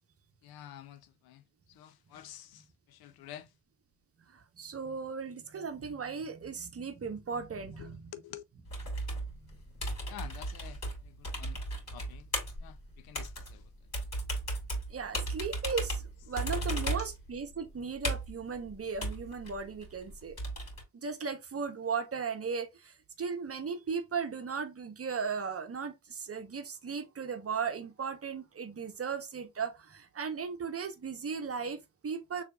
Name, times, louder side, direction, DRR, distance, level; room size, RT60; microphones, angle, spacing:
voice 1, 0.4-3.5 7.7-8.4 10.1-11.6 11.9-12.3 12.6-13.7 16.7-17.2, left 11 dB, 55° left, 0.6 m, -49 dB
voice 2, 4.3-8.0 14.9-20.4 20.9-32.4, right 5 dB, 30° right, 1.0 m, -37 dB
sound 1, 8.7-20.8, right 1 dB, 35° left, 2.5 m, -36 dB
6.6 x 2.7 x 2.4 m
hypercardioid pair, 45°, 45 cm